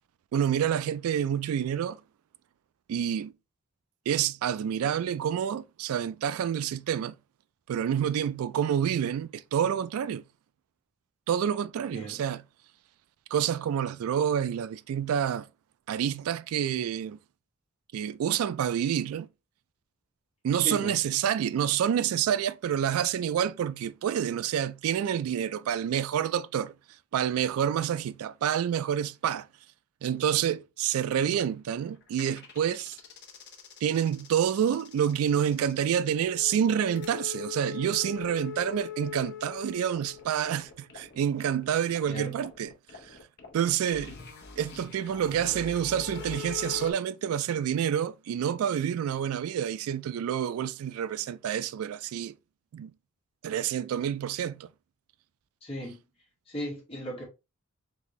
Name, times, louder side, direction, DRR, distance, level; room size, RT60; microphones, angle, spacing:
voice 1, 0.3-2.0 2.9-3.3 4.1-7.1 7.7-10.2 11.3-12.4 13.3-15.5 15.9-17.2 17.9-19.3 20.4-26.7 27.1-29.5 30.0-33.0 33.8-42.7 43.5-44.1 44.6-52.3 52.7-52.9 53.4-54.7, right 9 dB, 80° right, 0.3 m, -28 dB
voice 2, 11.9-12.2 20.6-21.0 42.1-42.4 55.6-56.0 56.5-57.2, right 1 dB, 25° left, 2.0 m, -36 dB
sound 1, 31.3-31.4 31.8-46.9, left 8 dB, 50° left, 1.0 m, -42 dB
4.1 x 3.5 x 3.1 m
head